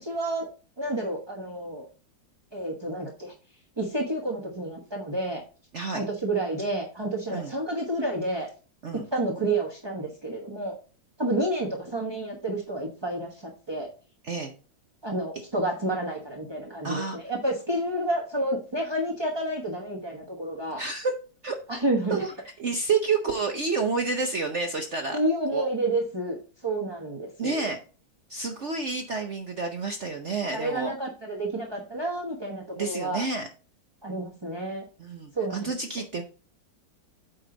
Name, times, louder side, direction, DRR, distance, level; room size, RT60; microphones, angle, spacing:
voice 1, 0.0-0.5 0.8-1.9 2.5-3.3 3.8-5.4 5.9-8.5 9.1-10.8 11.2-13.9 15.0-20.8 21.7-22.2 25.1-26.4 26.6-27.6 30.5-33.2 34.0-34.8 35.3-35.7, right 1 dB, 20° right, 0 dB, 0.9 m, -30 dB
voice 2, 5.7-6.0 7.3-7.5 8.8-9.0 14.2-14.5 16.8-17.2 20.8-21.1 21.4-21.6 22.1-22.3 22.6-25.2 25.5-25.7 27.4-27.8 28.3-30.9 32.8-33.5 35.0-36.2, right 4 dB, 55° right, 5 dB, 0.9 m, -29 dB
8.6 x 4.9 x 3.9 m, 0.37 s
omnidirectional pair, 2.0 m